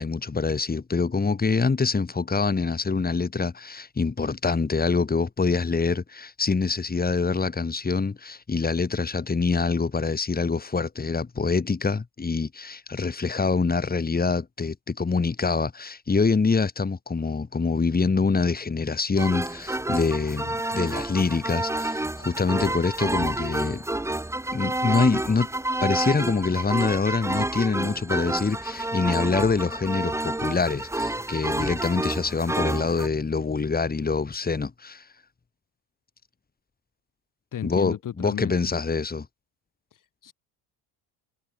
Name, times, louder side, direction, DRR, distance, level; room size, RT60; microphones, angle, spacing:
voice 1, 0.0-23.8 24.5-25.5 25.8-35.0 37.6-39.3, left 4 dB, 20° left, 6.6 m, -25 dB
sound 1, 19.2-33.1, right 1 dB, 5° right, 2.1 m, -29 dB
voice 2, 37.5-38.7 39.9-40.3, left 10 dB, 45° left, 5.3 m, -34 dB
supercardioid pair, 105°, 44 cm